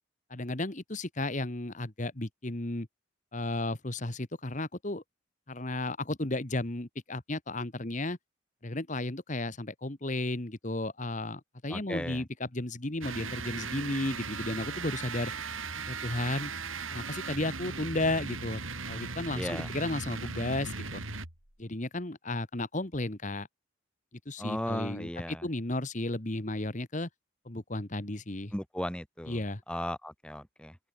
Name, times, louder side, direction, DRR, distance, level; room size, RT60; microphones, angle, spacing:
voice 1, 0.3-2.9 3.3-5.0 5.5-8.2 8.6-15.3 15.9-16.5 16.9-18.6 18.9-21.0 21.6-23.5 24.2-27.1 27.4-28.5 29.3-29.6, left 2 dB, 40° left, 1.6 m, -34 dB
voice 2, 11.7-12.2 19.3-19.7 24.4-25.5 28.5-29.4 29.7-30.8, equal, 5° left, 1.5 m, -36 dB
sound 1, 13.0-21.5, right 4 dB, 85° right, 7.0 m, -38 dB
open air
head